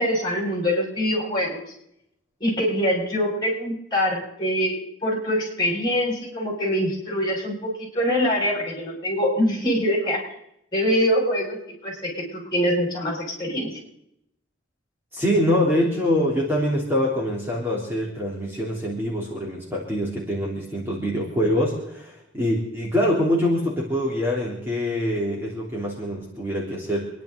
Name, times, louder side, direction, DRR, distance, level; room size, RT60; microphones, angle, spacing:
voice 1, 0.0-1.6 2.4-10.3 10.7-11.6 11.8-13.8, equal, 20° left, -2 dB, 6.5 m, -24 dB
voice 2, 15.1-27.1, equal, 10° right, -4 dB, 3.3 m, -24 dB
28.5 x 11.0 x 4.0 m, 0.76 s
head